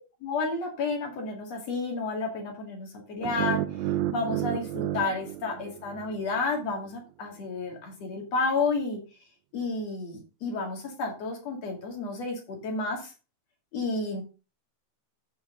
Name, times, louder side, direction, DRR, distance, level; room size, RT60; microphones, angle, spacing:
voice 1, 0.2-3.6 4.1-9.0 9.5-13.1 13.7-14.2, left 3 dB, 60° left, 2 dB, 3.3 m, -31 dB
sound 1, 3.2-6.3, right 14 dB, 80° right, 1.6 m, -31 dB
14.0 x 4.7 x 3.8 m, 0.32 s
omnidirectional pair, 3.5 m